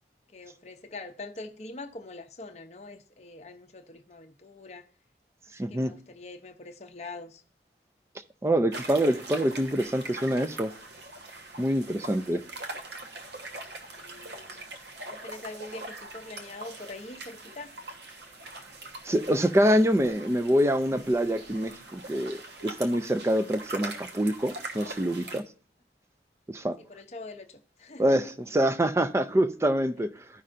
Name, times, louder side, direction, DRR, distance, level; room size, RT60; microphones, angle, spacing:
voice 1, 0.3-4.9 5.7-7.4 14.0-14.7 15.1-17.7 26.8-28.3, left 2 dB, 40° left, 0.6 m, -43 dB
voice 2, 5.5-5.9 8.4-10.7 11.6-12.4 19.0-25.4 26.5-26.8 28.0-30.1, equal, 15° right, 0.4 m, -25 dB
sound 1, 8.7-25.4, right 2 dB, 75° right, 1.2 m, -42 dB
13.0 x 5.5 x 2.5 m
head